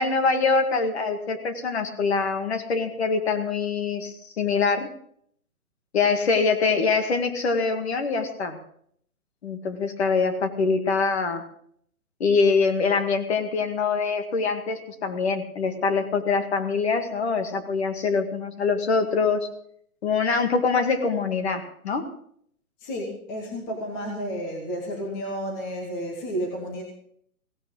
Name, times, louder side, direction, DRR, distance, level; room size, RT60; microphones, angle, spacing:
voice 1, 0.0-4.9 5.9-8.6 9.4-11.4 12.2-19.5 20.0-22.1, left 4 dB, 45° left, 7 dB, 2.0 m, -24 dB
voice 2, 22.8-26.8, equal, 10° left, 1 dB, 1.0 m, -31 dB
16.5 x 16.0 x 3.8 m, 0.64 s
hypercardioid pair, 170°, 45 cm